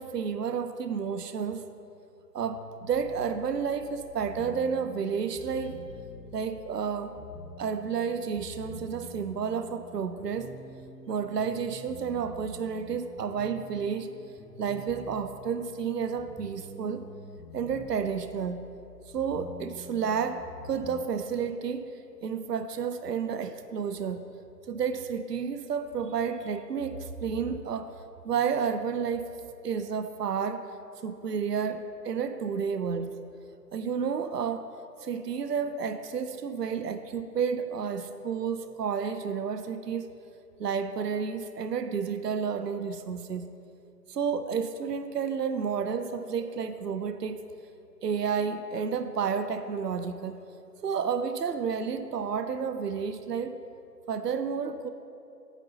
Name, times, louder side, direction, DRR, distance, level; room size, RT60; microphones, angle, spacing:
voice 1, 0.0-1.7 2.3-5.7 6.3-7.2 7.6-10.5 11.1-14.1 14.6-17.1 17.5-18.6 19.1-21.9 22.2-24.2 24.7-27.9 28.2-29.3 29.6-30.6 31.0-33.1 33.7-34.6 35.0-40.1 40.6-43.5 44.1-47.5 48.0-50.4 50.8-53.6 54.1-54.9, right 6 dB, 70° right, 10 dB, 0.6 m, -31 dB
sound 1, 2.4-21.0, left 1 dB, ahead, 0.4 m, -47 dB
8.9 x 3.9 x 6.9 m, 2.7 s
figure-of-eight pair, 155°, 50 cm